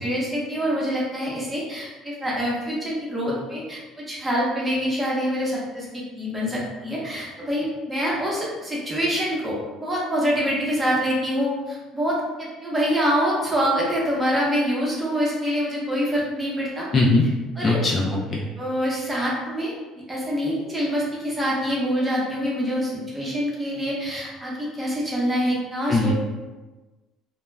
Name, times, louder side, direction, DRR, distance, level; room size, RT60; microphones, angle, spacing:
voice 1, 0.0-5.9 6.2-16.9 17.6-17.8 18.6-19.7 20.1-26.1, equal, 15° right, -5 dB, 0.8 m, -25 dB
voice 2, 16.9-17.3 17.6-18.4 25.9-26.1, left 2 dB, 30° left, -3 dB, 0.3 m, -20 dB
2.2 x 2.1 x 3.1 m, 1.2 s
cardioid pair, 120°, 0 cm